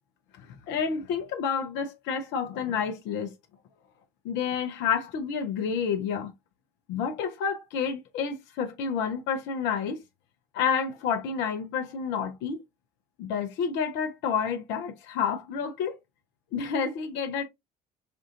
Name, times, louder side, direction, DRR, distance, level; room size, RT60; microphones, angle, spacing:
voice 1, 0.4-3.3 4.2-6.3 6.9-10.0 10.5-12.6 13.2-16.0 16.5-17.4, left 6 dB, 65° left, 0.8 m, -29 dB
5.5 x 2.5 x 2.6 m
hypercardioid pair, 55°, 20 cm